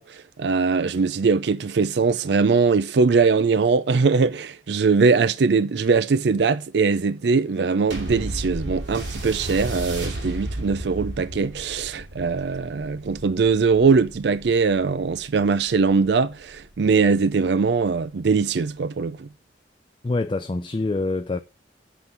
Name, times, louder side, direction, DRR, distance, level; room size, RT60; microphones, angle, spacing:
voice 1, 0.0-19.3, right 4 dB, 70° right, 0.5 m, -21 dB
sound 1, 7.9-16.7 17.4-17.5, right 1 dB, 85° right, 2.6 m, -34 dB
voice 2, 20.0-21.4, left 2 dB, 25° left, 0.4 m, -25 dB
8.1 x 3.9 x 6.8 m
head